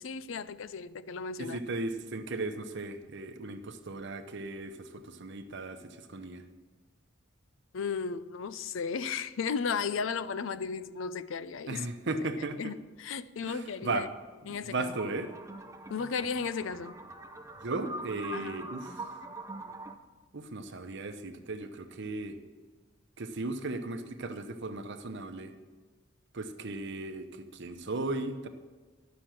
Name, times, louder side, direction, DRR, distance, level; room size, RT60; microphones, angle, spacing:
voice 1, 0.0-1.6 7.7-11.9 12.6-14.1 14.5-14.9 15.9-17.0 18.3-18.6, left 5 dB, 75° left, 0.5 m, -35 dB
voice 2, 1.4-6.4 11.7-12.7 13.4-14.1 14.5-15.3 17.6-19.1 20.3-22.4 23.2-25.5 26.3-28.5, right 2 dB, 60° right, 0.8 m, -36 dB
sound 1, 14.9-20.0, right 2 dB, 15° right, 0.6 m, -43 dB
11.5 x 6.0 x 7.6 m
head